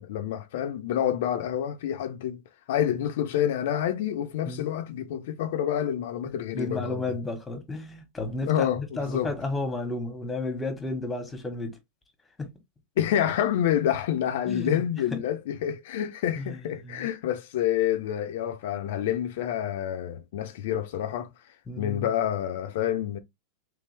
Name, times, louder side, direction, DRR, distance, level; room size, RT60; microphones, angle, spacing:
voice 1, 0.0-2.4 2.7-7.0 8.4-9.3 13.0-21.3 21.8-23.2, left 10 dB, 70° left, 0.7 m, -28 dB
voice 2, 6.5-11.8 12.4-12.5 14.4-14.8 15.1-15.2 16.4-17.1 21.7-22.1, left 2 dB, 10° left, 1.4 m, -32 dB
3.4 x 3.4 x 3.4 m
supercardioid pair, 130°, 0 cm